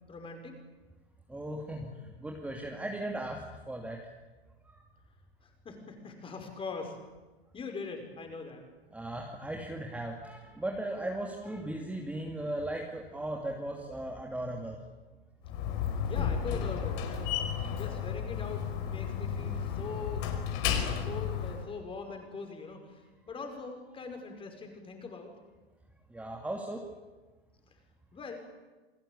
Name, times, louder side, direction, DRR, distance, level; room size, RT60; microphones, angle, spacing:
voice 1, 0.1-0.6 5.4-7.0 7.5-8.6 16.1-17.3 17.7-25.4 28.1-28.4, left 4 dB, 15° left, 4 dB, 5.4 m, -42 dB
voice 2, 1.3-4.0 4.6-4.8 8.9-14.8 26.1-26.8, right 1 dB, 5° right, 1 dB, 2.6 m, -37 dB
Slam, 15.4-21.6, left 8 dB, 45° left, 5.0 m, -33 dB
29.0 x 19.0 x 8.6 m, 1.2 s
hypercardioid pair, 120°, 31 cm